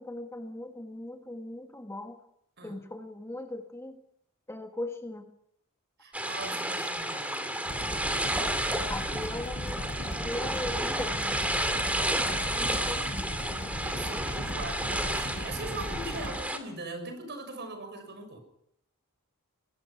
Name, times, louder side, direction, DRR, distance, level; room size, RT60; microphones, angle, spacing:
voice 1, 0.0-2.2 2.6-4.0 4.5-5.3 6.5-6.6 8.9-11.4 12.2-13.3, left 1 dB, 10° left, 5 dB, 1.5 m, -39 dB
voice 2, 6.0-7.4 7.7-8.5 12.4-12.6 13.8-18.4, right 2 dB, 50° right, 7 dB, 6.3 m, -41 dB
sound 1, 6.1-16.6, right 1 dB, 5° right, 2.6 m, -31 dB
sound 2, 7.6-16.4, equal, 35° left, 5.7 m, -37 dB
24.0 x 19.5 x 5.8 m, 0.75 s
head